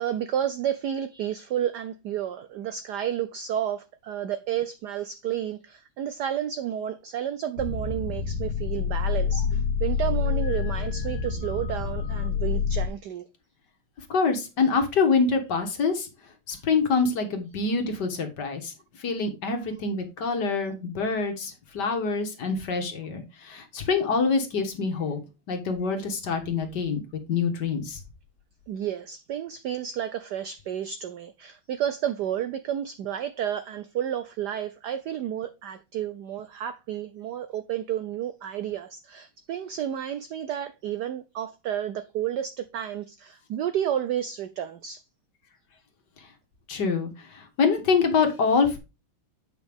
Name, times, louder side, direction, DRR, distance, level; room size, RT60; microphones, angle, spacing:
voice 1, 0.0-13.2 28.7-45.0, right 10 dB, 80° right, 0.9 m, -31 dB
sound 1, 7.6-12.9, left 6 dB, 85° left, 1.8 m, -27 dB
voice 2, 14.1-16.1 16.5-18.7 19.0-25.2 25.5-27.0 27.3-28.0 46.7-48.8, left 4 dB, 55° left, 1.9 m, -25 dB
8.2 x 5.6 x 3.5 m
omnidirectional pair, 2.4 m